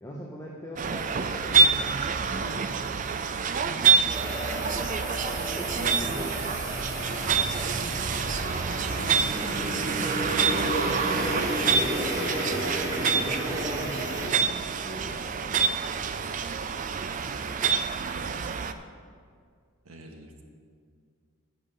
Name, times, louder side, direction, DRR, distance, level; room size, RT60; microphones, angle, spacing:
voice 1, 0.0-2.1 2.5-3.1 4.1-4.4 5.6-6.5 10.3-12.2 12.5-15.7, equal, 15° left, -3 dB, 0.8 m, -41 dB
sound 1, 0.8-18.7, right 5 dB, 35° right, 0.3 m, -27 dB
voice 2, 2.3-2.7 3.6-4.0 9.0-9.2 18.3-18.4 19.8-20.4, right 1 dB, 80° right, 3 dB, 1.3 m, -42 dB
sound 2, 4.1-14.3, equal, 15° right, 1.9 m, -33 dB
10.5 x 5.6 x 6.9 m, 2.1 s
head